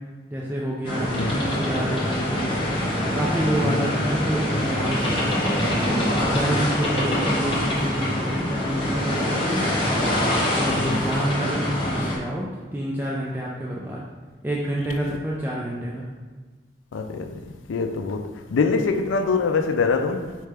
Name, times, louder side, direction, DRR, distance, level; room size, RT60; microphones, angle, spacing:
voice 1, 0.3-2.5 3.0-5.7 6.2-9.7 10.5-14.0 14.4-16.1, right 1 dB, 10° right, 0.4 m, -28 dB
sound 1, 0.8-12.2, left 1 dB, 25° left, 1.0 m, -24 dB
voice 2, 10.7-11.0 16.9-17.4 17.7-20.4, left 4 dB, 85° left, 0.4 m, -24 dB
4.7 x 3.2 x 3.4 m
head